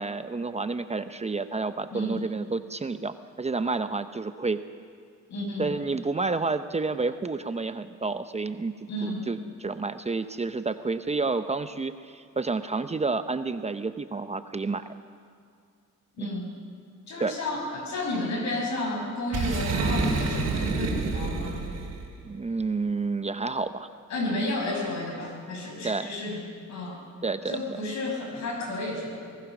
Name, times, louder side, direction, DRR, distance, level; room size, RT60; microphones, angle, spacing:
voice 1, 0.0-4.6 5.6-8.7 9.0-14.9 16.2-16.3 17.2-17.3 22.2-23.9 25.8-26.1 27.2-27.6, right 3 dB, 20° right, 10 dB, 0.7 m, -30 dB
voice 2, 1.9-2.2 5.3-5.7 8.9-9.3 16.2-16.5 17.1-21.6 24.1-26.4 26.7-27.0 27.5-29.2, left 1 dB, 65° left, 1 dB, 6.1 m, -32 dB
Boom, 19.3-22.1, right 3 dB, 55° right, 3.3 m, -28 dB
23.0 x 20.0 x 6.1 m, 2.2 s
cardioid pair, 90°, 30 cm